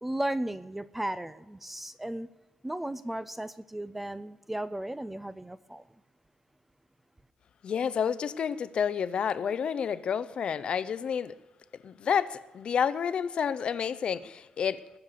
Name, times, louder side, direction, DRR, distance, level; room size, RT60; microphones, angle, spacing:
voice 1, 0.0-2.3 2.6-5.8, right 1 dB, 5° right, 0.3 m, -35 dB
voice 2, 7.6-11.3 11.8-14.8, left 7 dB, 45° left, 0.5 m, -29 dB
21.5 x 7.2 x 6.7 m
wide cardioid pair, 180°, 2 cm